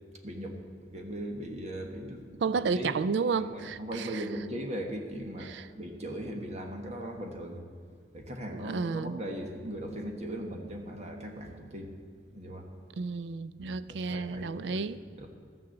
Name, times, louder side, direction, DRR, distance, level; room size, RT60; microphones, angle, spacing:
voice 1, 0.2-2.9 3.4-7.6 8.1-11.9 12.3-12.7 13.6-14.9 15.2-15.3, equal, 40° right, 1.3 m, -39 dB
voice 2, 2.4-4.2 5.5-5.6 8.6-9.2 13.0-15.0, right 5 dB, 85° right, 0.4 m, -31 dB
13.5 x 6.8 x 7.9 m
head